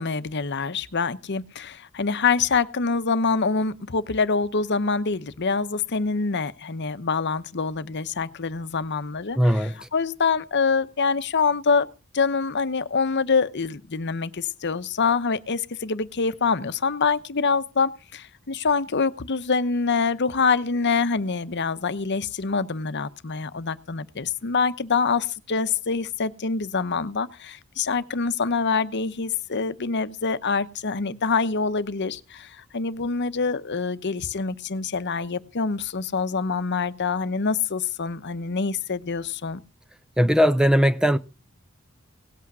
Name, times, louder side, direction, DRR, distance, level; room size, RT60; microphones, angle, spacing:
voice 1, 0.0-11.9 12.1-39.6, left 4 dB, 55° left, 0.9 m, -25 dB
voice 2, 9.4-9.7 40.2-41.2, equal, 5° right, 0.6 m, -18 dB
18.0 x 8.5 x 6.1 m
head